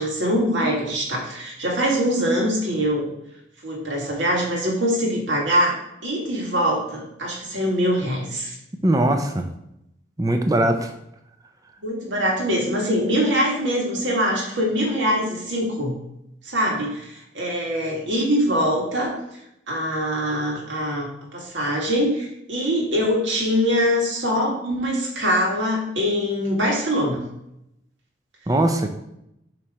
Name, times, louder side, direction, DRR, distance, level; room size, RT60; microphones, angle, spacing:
voice 1, 0.0-3.1 3.6-8.6 11.8-16.0 16.5-19.2 19.7-27.2, equal, 80° right, -1 dB, 1.9 m, -23 dB
voice 2, 8.8-9.5 10.2-10.9 28.5-28.9, right 1 dB, 20° right, 5 dB, 0.5 m, -20 dB
7.1 x 3.3 x 4.8 m, 0.81 s
head